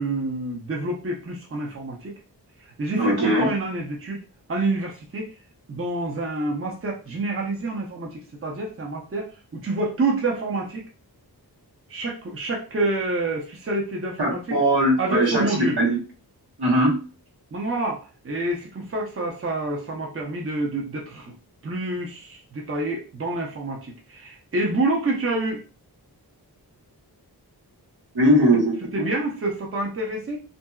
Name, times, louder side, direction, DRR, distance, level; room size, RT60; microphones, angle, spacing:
voice 1, 0.0-2.1 2.8-4.2 4.5-5.3 5.7-10.8 11.9-14.6 15.0-15.8 17.5-18.0 18.2-21.3 21.6-25.6 28.9-30.4, right 2 dB, 35° right, -1 dB, 0.7 m, -27 dB
voice 2, 3.0-3.5 14.2-15.5 15.8-16.0 16.6-16.9 28.1-29.1, right 1 dB, 85° right, -3 dB, 1.3 m, -20 dB
2.7 x 2.6 x 2.3 m, 0.34 s
wide cardioid pair, 80°, 39 cm